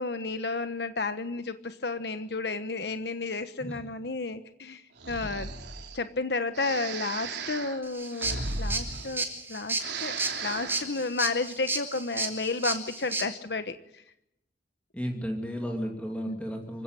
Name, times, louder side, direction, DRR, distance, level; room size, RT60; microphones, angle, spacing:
voice 1, 0.0-5.5 5.9-10.1 10.4-14.0 16.3-16.4, left 3 dB, 70° left, 10 dB, 1.2 m, -32 dB
Breathing, 5.0-6.0 6.5-9.5 9.7-10.9, right 3 dB, 75° right, 3.4 m, -36 dB
sound 1, 7.8-13.3, right 3 dB, 15° right, 3.5 m, -33 dB
voice 2, 14.9-16.8, equal, 10° left, 2 dB, 2.6 m, -34 dB
26.5 x 16.5 x 9.0 m, 0.81 s
head